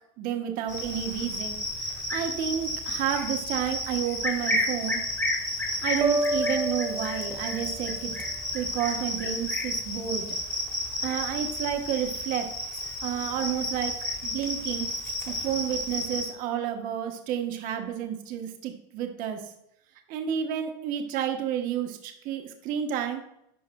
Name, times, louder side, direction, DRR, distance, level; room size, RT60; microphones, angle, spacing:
voice 1, 0.2-5.0 5.8-8.1 8.5-10.4 11.0-12.5 13.0-14.0 14.2-14.9 15.3-19.5 20.1-23.2, right 9 dB, 55° right, 5 dB, 1.0 m, -31 dB
Cricket, 0.7-16.3, left 1 dB, 15° left, 1.5 m, -32 dB
sound 1, 6.0-7.9, right 1 dB, 20° right, 0.4 m, -29 dB
11.0 x 4.7 x 2.3 m, 0.77 s
supercardioid pair, 120°, 17 cm